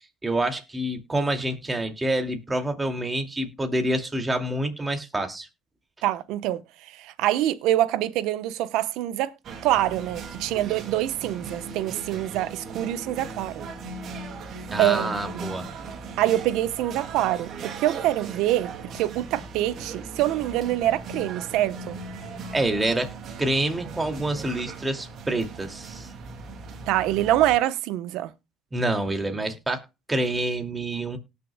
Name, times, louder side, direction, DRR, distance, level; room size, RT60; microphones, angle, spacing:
voice 1, 0.2-5.5 14.7-15.7 22.5-23.1 23.4-26.1 28.7-31.2, right 1 dB, 15° right, 2.4 m, -27 dB
voice 2, 6.0-9.3 9.6-13.6 14.8-15.1 15.3-15.4 16.2-21.9 26.9-28.3, right 14 dB, 75° right, 0.9 m, -25 dB
sound 1, 9.4-27.6, right 4 dB, 55° right, 2.4 m, -38 dB
18.5 x 6.7 x 2.3 m
supercardioid pair, 85°, 0 cm